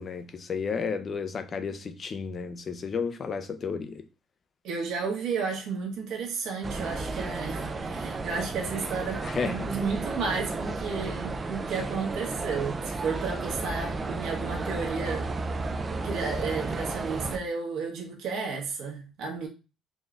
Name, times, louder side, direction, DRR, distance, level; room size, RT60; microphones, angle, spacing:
voice 1, 0.0-4.0 9.2-9.7, left 5 dB, 35° left, 0.5 m, -32 dB
voice 2, 4.6-15.5 16.0-19.5, right 5 dB, 75° right, 1.2 m, -32 dB
sound 1, 6.6-17.4, right 3 dB, 25° right, 0.4 m, -33 dB
4.1 x 2.5 x 3.2 m
cardioid pair, 150°, 0 cm